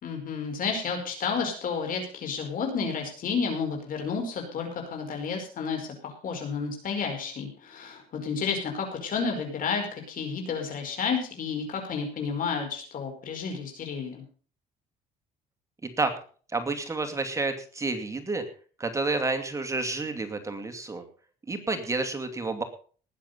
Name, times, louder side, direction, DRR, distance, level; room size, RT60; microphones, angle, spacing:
voice 1, 0.0-14.2, left 5 dB, 55° left, 3 dB, 5.0 m, -31 dB
voice 2, 15.8-16.1 16.5-18.4 18.8-21.0 21.5-22.6, right 3 dB, 20° right, 6 dB, 2.4 m, -30 dB
19.5 x 7.7 x 5.5 m, 0.41 s
cardioid pair, 110°, 17 cm